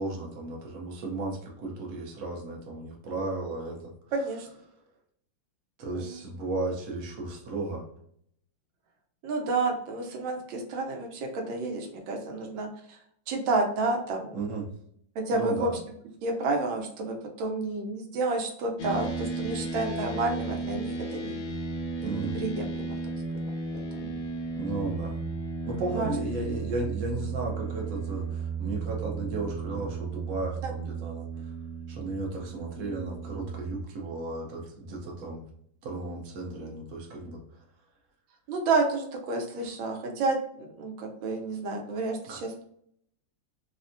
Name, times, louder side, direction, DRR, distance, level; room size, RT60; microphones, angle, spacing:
voice 1, 0.0-3.8 5.8-7.8 14.3-14.7 15.3-15.7 22.0-22.4 24.6-25.2 25.6-31.3 31.9-35.4 35.8-37.4 42.3-42.4, right 2 dB, 60° right, -1 dB, 1.0 m, -34 dB
voice 2, 4.1-4.5 5.9-6.2 9.2-13.0 13.3-14.4 15.1-15.7 16.2-21.4 22.0-23.0 23.7-24.1 25.9-26.1 30.6-30.7 38.5-42.6, right 3 dB, 80° right, 1 dB, 1.4 m, -30 dB
sound 1, 18.8-33.8, right 4 dB, 70° left, 1.2 m, -34 dB
3.4 x 2.1 x 2.5 m, 0.67 s
omnidirectional pair, 2.1 m